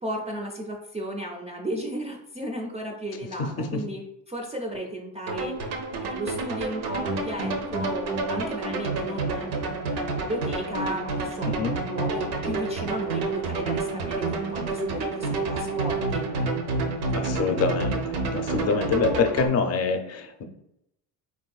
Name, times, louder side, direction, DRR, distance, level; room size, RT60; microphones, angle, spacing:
voice 1, 0.0-5.7 6.0-9.8 10.0-16.3, equal, 20° right, 0 dB, 0.3 m, -34 dB
sound 1, 5.3-19.5, right 3 dB, 75° right, 0.6 m, -29 dB
voice 2, 17.1-18.0 18.3-20.4, left 4 dB, 40° left, 5 dB, 0.5 m, -25 dB
3.4 x 2.6 x 2.3 m, 0.80 s
cardioid pair, 100°, 39 cm